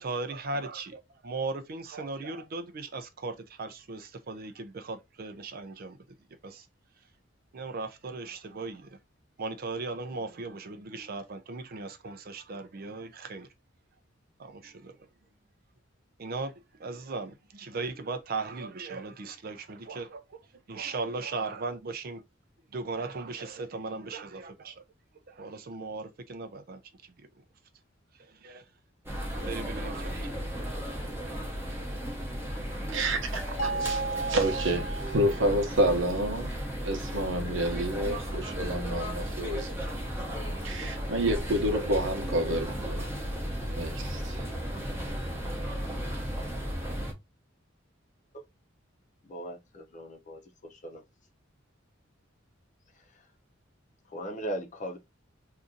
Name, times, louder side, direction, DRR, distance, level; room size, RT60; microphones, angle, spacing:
voice 1, 0.0-6.0 6.4-6.7 7.5-9.0 9.4-13.5 14.4-15.0 16.2-16.5 16.8-22.2 22.7-24.8 25.3-27.3 28.1-28.7 29.3-30.3, right 3 dB, 50° right, 0.5 m, -37 dB
sound 1, 29.1-47.1, equal, 10° right, 0.8 m, -34 dB
voice 2, 32.9-39.7 40.1-43.1 43.7-44.5, right 1 dB, 70° right, 0.9 m, -29 dB
sound 2, 33.6-35.8, right 4 dB, 80° left, 0.6 m, -34 dB
voice 3, 49.3-50.4 50.7-51.0 54.1-55.0, equal, 40° left, 0.7 m, -38 dB
2.7 x 2.5 x 3.7 m
head